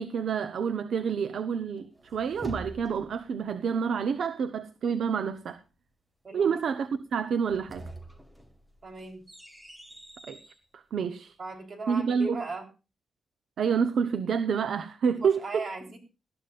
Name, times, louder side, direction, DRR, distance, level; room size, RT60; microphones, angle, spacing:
voice 1, 0.0-5.6 6.3-7.8 10.3-10.4 10.7-11.3 11.9-12.4 13.6-15.6, right 6 dB, 75° right, 0.9 m, -28 dB
sound 1, 1.8-3.3 7.3-10.6, equal, 10° right, 1.8 m, -45 dB
voice 2, 8.8-9.2 11.4-12.7 15.1-16.0, right 2 dB, 45° right, 3.7 m, -38 dB
19.5 x 13.5 x 2.5 m
wide cardioid pair, 150°, 0 cm